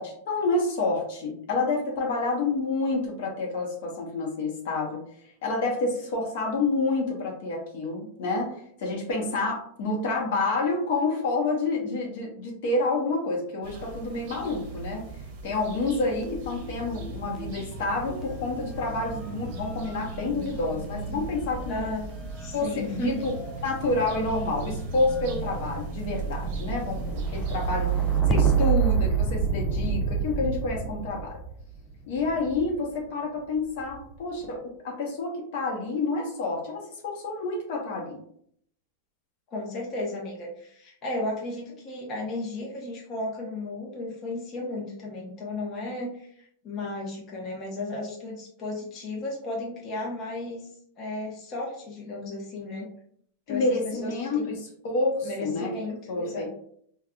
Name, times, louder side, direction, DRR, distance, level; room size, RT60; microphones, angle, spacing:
voice 1, 0.0-5.0 5.4-8.5 8.8-15.0 15.4-21.9 22.5-23.3 23.6-27.9 28.3-31.4 32.1-38.2 53.5-54.5 54.8-55.7 56.1-56.5, left 3 dB, 65° left, 0 dB, 0.9 m, -28 dB
sound 1, 13.6-28.2, right 3 dB, 55° right, 0.7 m, -37 dB
sound 2, 16.2-17.5 17.8-32.8 33.6-34.2, right 6 dB, 5° left, 0.5 m, -30 dB
voice 2, 21.7-22.1 22.4-23.2 39.5-50.7 51.0-52.9 53.5-54.5 55.2-56.5, left 2 dB, 35° left, -3 dB, 0.8 m, -34 dB
3.6 x 2.3 x 2.2 m, 0.65 s
hypercardioid pair, 120°, 0 cm